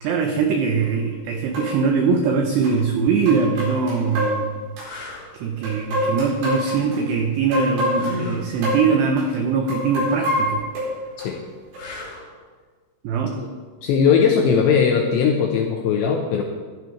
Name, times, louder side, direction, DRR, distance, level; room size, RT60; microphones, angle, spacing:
voice 1, 0.0-4.6 5.4-10.7 13.0-13.4, right 5 dB, 85° right, 4 dB, 2.4 m, -22 dB
sound 1, 0.8-0.9 1.5-1.7 2.6-2.7 3.3-4.9 5.6-7.0 7.5-8.2 8.6-8.9 9.2-9.3 9.7-11.2 11.7-11.9, left 1 dB, 60° right, 5.8 m, -25 dB
sound 2, 3.4-3.5 4.1-4.2 4.8-5.3 7.9-8.5 11.7-12.3 15.3-15.5, left 2 dB, 40° left, 3.0 m, -34 dB
voice 2, 13.8-16.4, left 6 dB, 85° left, 1 dB, 2.5 m, -19 dB
14.5 x 12.0 x 3.3 m, 1.5 s
omnidirectional pair, 5.9 m